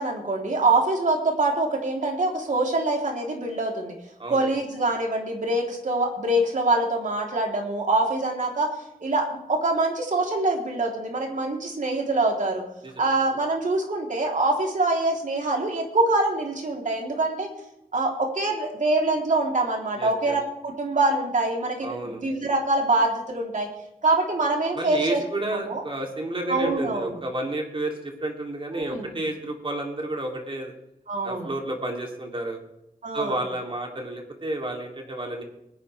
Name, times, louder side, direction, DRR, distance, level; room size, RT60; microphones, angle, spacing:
voice 1, 0.0-3.9 4.3-8.7 9.0-12.6 13.0-17.5 17.9-23.7 24.0-25.2 25.5-25.8 26.5-27.1 28.8-29.1 31.1-31.5 33.0-33.4, right 2 dB, 60° right, 0 dB, 3.5 m, -24 dB
voice 2, 20.0-20.4 21.8-22.2 24.7-30.7 31.2-32.6 33.1-35.4, right 1 dB, 35° right, 2 dB, 3.1 m, -31 dB
21.0 x 10.0 x 3.5 m, 0.84 s
wide cardioid pair, 90°, 14 cm